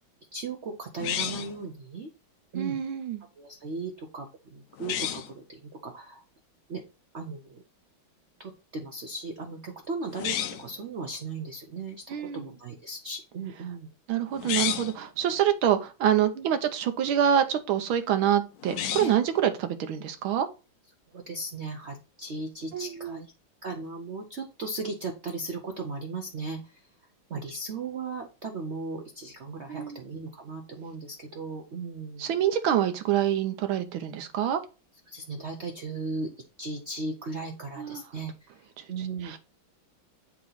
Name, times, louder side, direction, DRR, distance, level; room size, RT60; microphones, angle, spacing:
voice 1, 0.3-2.1 2.5-2.8 3.4-6.2 6.7-6.8 7.1-7.6 8.4-13.9 16.3-16.5 19.0-19.1 21.1-23.3 23.6-26.8 27.3-32.3 35.1-36.3 36.6-38.3 38.9-39.3, right 3 dB, 65° right, 0.6 m, -37 dB
sound 1, 1.0-1.6 4.8-5.3 10.1-10.7 14.3-15.0 18.6-19.3, left 10 dB, 65° left, 0.9 m, -31 dB
voice 2, 2.5-3.2 12.1-12.5 14.1-20.5 22.7-23.2 29.7-30.0 32.2-34.6 37.8-38.0 38.8-39.4, right 10 dB, 85° right, 1.6 m, -26 dB
8.3 x 3.0 x 3.9 m
omnidirectional pair, 2.2 m